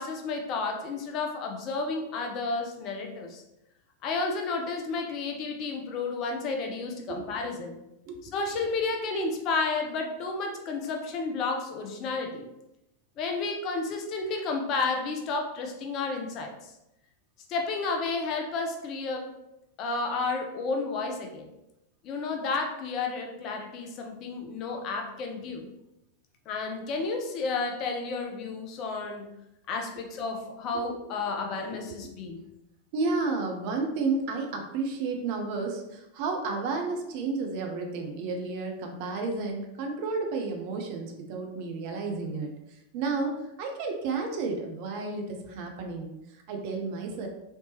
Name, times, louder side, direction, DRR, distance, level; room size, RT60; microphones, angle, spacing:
voice 1, 0.0-3.4 4.0-7.8 8.3-12.5 13.2-16.7 17.5-19.3 19.8-21.5 22.0-25.6 26.5-29.3 29.7-32.4, left 3 dB, 35° left, 3 dB, 0.5 m, -31 dB
voice 2, 32.9-42.5 42.9-47.3, right 3 dB, 45° right, 3 dB, 0.5 m, -32 dB
3.3 x 2.8 x 2.8 m, 0.90 s
figure-of-eight pair, 90°, 0 cm